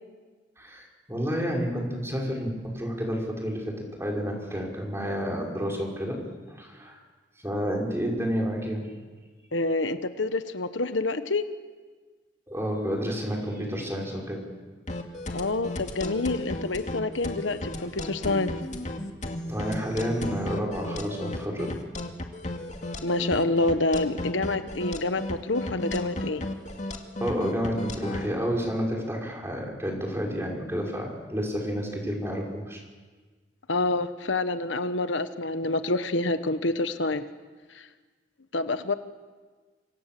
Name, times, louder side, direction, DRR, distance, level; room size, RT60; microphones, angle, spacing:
voice 1, 0.6-6.2 6.5-7.0 7.4-8.9 12.5-14.4 19.5-21.8 27.2-32.8, equal, 15° right, 0 dB, 5.6 m, -30 dB
voice 2, 9.5-11.4 15.3-18.5 23.0-26.4 33.7-37.2 37.7-37.9 38.5-38.9, left 2 dB, 75° left, 10 dB, 1.2 m, -27 dB
sound 1, 14.9-28.3, left 1 dB, 40° left, 2.3 m, -34 dB
27.0 x 26.5 x 7.7 m, 1.4 s
head